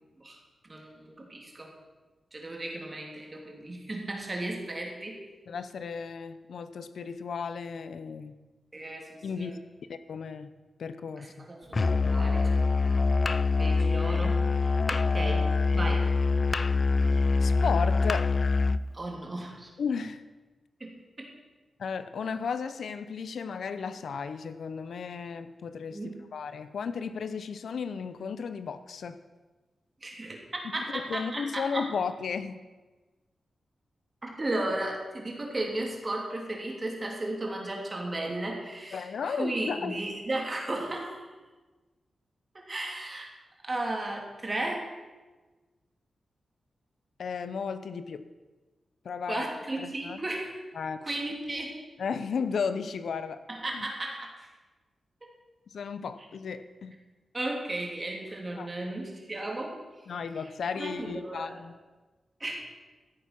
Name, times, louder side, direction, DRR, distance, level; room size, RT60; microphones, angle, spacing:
voice 1, 0.6-1.7 2.3-5.2 8.7-9.6 11.2-12.5 13.6-16.1 18.9-19.7 20.8-21.3 25.9-26.2 30.0-30.4 30.7-31.9 34.2-41.3 42.5-43.3 43.6-44.9 49.3-50.5 51.0-51.8 53.5-54.5 55.2-55.3 57.3-59.8 60.8-61.6 62.4-62.6, right 2 dB, 30° right, 0 dB, 2.9 m, -35 dB
voice 2, 5.5-8.3 9.2-9.5 9.9-10.5 10.8-11.5 17.4-18.3 19.8-20.2 21.8-26.0 26.3-29.2 30.8-32.6 38.9-40.0 47.2-48.3 49.0-49.4 49.8-50.2 50.7-51.1 52.0-53.4 53.7-53.9 55.7-57.0 58.6-58.7 60.1-61.7, left 6 dB, 80° left, 12 dB, 0.7 m, -34 dB
Musical instrument, 11.7-18.9, left 3 dB, 40° left, 0.4 m, -24 dB
15.0 x 8.4 x 6.0 m, 1.2 s
wide cardioid pair, 95°, 0 cm